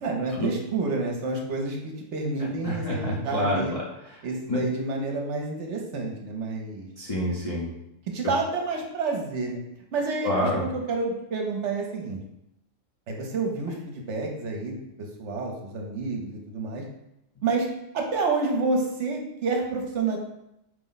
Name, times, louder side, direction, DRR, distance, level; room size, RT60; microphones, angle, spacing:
voice 1, 0.0-3.8 4.2-6.9 8.1-9.6 9.9-12.2 13.1-14.8 15.2-16.8 17.4-17.7 17.9-20.2, right 3 dB, 65° right, 1 dB, 0.9 m, -29 dB
voice 2, 2.4-4.2 4.5-4.6 7.0-7.7 10.2-10.6, left 1 dB, 40° left, -6 dB, 0.5 m, -28 dB
4.7 x 2.1 x 3.9 m, 0.84 s
omnidirectional pair, 1.3 m